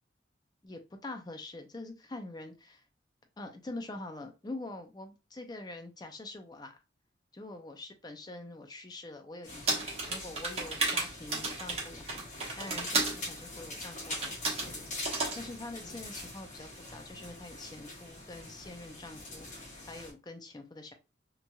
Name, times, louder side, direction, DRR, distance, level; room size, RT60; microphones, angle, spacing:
voice 1, 0.6-2.8 3.4-6.8 7.3-9.8 10.1-14.9 15.4-20.9, left 2 dB, 20° left, 0.4 m, -45 dB
sound 1, 9.4-20.1, left 2 dB, 45° left, 1.2 m, -44 dB
sound 2, 9.7-13.2 14.1-14.7 15.0-15.4, right 3 dB, 35° right, 0.9 m, -32 dB
3.0 x 2.7 x 2.2 m
head